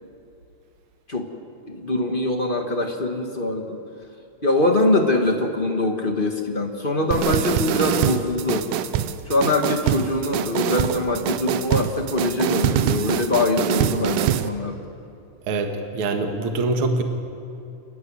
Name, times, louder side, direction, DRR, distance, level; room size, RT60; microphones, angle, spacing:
voice 1, 1.7-3.8 4.4-8.7 9.3-14.8, left 2 dB, 30° left, 1 dB, 0.9 m, -23 dB
sound 1, 7.1-14.5, right 10 dB, 85° right, 2.3 m, -24 dB
voice 2, 15.5-17.0, right 3 dB, 50° right, 5 dB, 2.2 m, -24 dB
29.0 x 13.0 x 9.7 m, 2.6 s
omnidirectional pair, 3.6 m